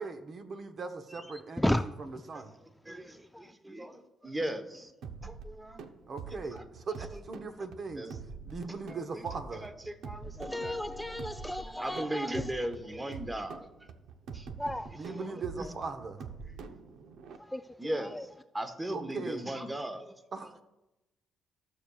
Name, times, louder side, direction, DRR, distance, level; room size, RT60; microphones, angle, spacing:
voice 1, 0.0-1.6 2.0-2.5 6.1-8.1 8.4-9.7 15.0-16.2 18.9-19.5 20.3-20.6, right 4 dB, 50° right, 7 dB, 1.0 m, -39 dB
voice 2, 2.8-4.9 5.2-5.8 6.5-6.6 7.1-7.2 7.9-8.2 8.9-9.2 9.5-10.7 11.1-11.2 11.8-13.7 14.3-14.5 15.1-15.7 16.7-16.8 17.8-18.3 18.5-20.5, right 1 dB, 15° right, 8 dB, 1.0 m, -38 dB
sound 1, 5.0-17.4, right 5 dB, 80° right, 0.7 m, -45 dB
voice 3, 10.4-12.5 14.6-14.9 17.4-17.6 18.1-18.2, left 1 dB, 5° left, 8 dB, 0.3 m, -33 dB
15.0 x 6.7 x 2.4 m, 0.94 s
cardioid pair, 90°, 0 cm